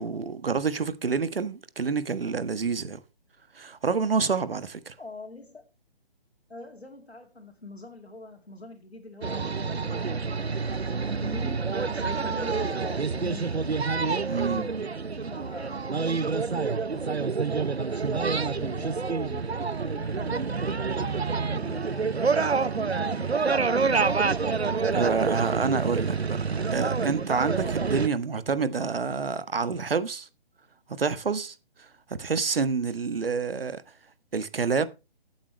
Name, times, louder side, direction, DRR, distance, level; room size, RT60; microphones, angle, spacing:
voice 1, 0.0-3.0 3.5-4.9 14.3-14.6 24.9-26.4 26.7-30.3 30.9-31.5 32.1-33.8 34.3-34.9, right 5 dB, 65° right, 1.4 m, -28 dB
voice 2, 5.0-5.7 6.5-13.7 14.2-14.9 15.3-17.3 17.8-24.0, left 2 dB, 90° left, 2.8 m, -45 dB
sound 1, 9.2-28.1, right 4 dB, 90° right, 0.8 m, -27 dB
15.0 x 8.8 x 3.2 m
figure-of-eight pair, 145°, 31 cm